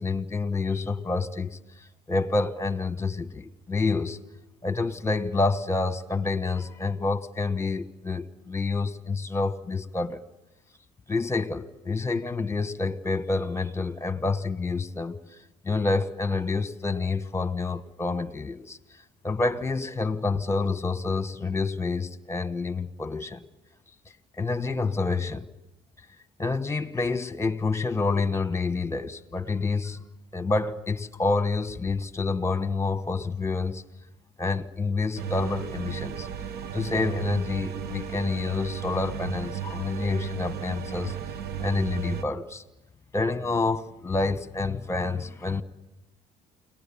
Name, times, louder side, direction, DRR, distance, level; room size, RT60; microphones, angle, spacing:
voice 1, 0.0-1.6 2.1-4.2 4.6-10.2 11.1-15.2 15.6-18.8 19.2-23.4 24.4-25.4 26.4-30.0 30.3-33.8 34.4-36.3 36.7-41.2 41.6-42.6 43.1-45.6, left 3 dB, 15° left, 1.3 m, -28 dB
sound 1, 35.2-42.2, right 9 dB, 70° right, 1.1 m, -34 dB
29.5 x 19.5 x 7.1 m
cardioid pair, 110°, 17 cm